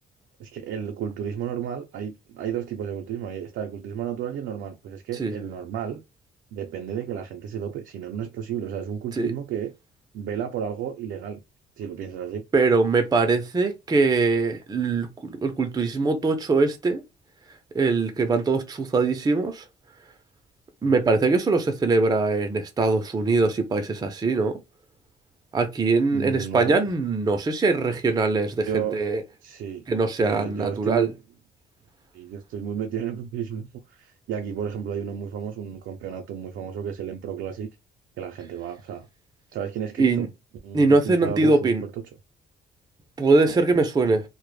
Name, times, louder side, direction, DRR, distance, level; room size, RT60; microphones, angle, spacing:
voice 1, 0.4-6.0 6.5-9.7 10.1-11.4 11.8-12.4 20.8-21.0 26.1-26.8 28.7-29.0 29.4-29.9 30.2-31.1 32.1-37.7 38.2-39.0 39.5-40.3 40.6-41.9 43.4-43.6 44.1-44.2, right 8 dB, 75° right, 0.4 m, -32 dB
voice 2, 12.5-17.0 17.7-19.6 20.8-24.6 25.5-29.2 29.9-31.1 40.0-40.3 40.7-41.8 43.2-44.2, right 3 dB, 20° right, 0.4 m, -22 dB
2.1 x 2.0 x 3.1 m
cardioid pair, 90°, 20 cm